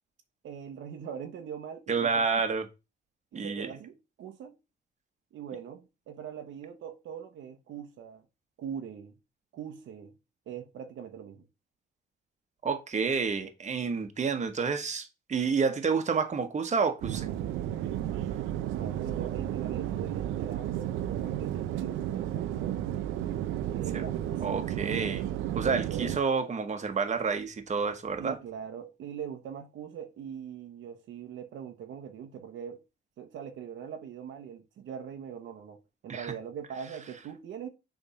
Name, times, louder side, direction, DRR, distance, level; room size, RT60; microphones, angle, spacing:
voice 1, 0.4-2.4 3.3-4.6 5.3-8.2 8.6-9.1 9.5-10.1 10.5-11.5 18.7-22.8 23.7-24.6 25.6-26.2 28.2-32.8 33.2-35.8 36.0-37.7, right 8 dB, 75° right, 1.0 m, -42 dB
voice 2, 1.9-2.7 3.3-3.7 12.6-17.3 23.9-24.1 24.4-25.2 25.5-28.4 36.1-36.3, right 5 dB, 35° right, 1.2 m, -29 dB
sound 1, 17.0-26.2, right 11 dB, 90° right, 0.6 m, -33 dB
7.0 x 3.5 x 5.6 m
cardioid pair, 90°, 20 cm